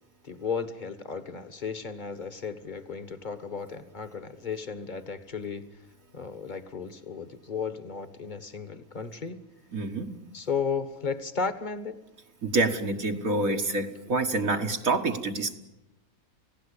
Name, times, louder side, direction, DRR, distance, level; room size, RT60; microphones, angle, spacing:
voice 1, 0.2-5.7 6.1-9.4 10.3-12.0, left 5 dB, 30° left, 11 dB, 1.6 m, -34 dB
voice 2, 9.7-10.2 12.4-15.5, right 2 dB, 70° right, 2 dB, 2.0 m, -27 dB
30.0 x 17.0 x 8.4 m, 0.97 s
omnidirectional pair, 1.5 m